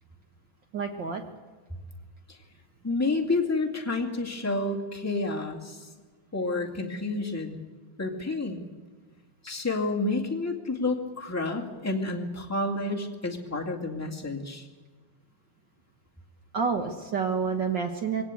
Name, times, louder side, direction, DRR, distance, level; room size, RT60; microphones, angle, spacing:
voice 1, 0.7-1.2 16.5-18.2, right 5 dB, 65° right, 5 dB, 1.1 m, -28 dB
voice 2, 2.8-5.9 6.3-7.6 8.0-8.6 9.4-14.7, left 2 dB, 10° left, -1 dB, 1.0 m, -30 dB
22.0 x 17.5 x 8.4 m, 1.4 s
omnidirectional pair, 4.1 m